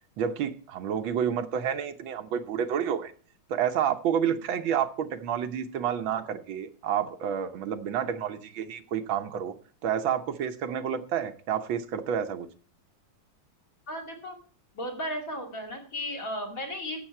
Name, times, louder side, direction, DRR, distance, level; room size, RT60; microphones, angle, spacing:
voice 1, 0.2-3.1 3.5-9.6 9.8-12.5, right 8 dB, 70° right, 10 dB, 1.6 m, -29 dB
voice 2, 13.9-14.4 14.7-17.0, equal, 40° left, 3 dB, 2.9 m, -35 dB
12.0 x 8.4 x 4.4 m, 0.43 s
omnidirectional pair, 2.4 m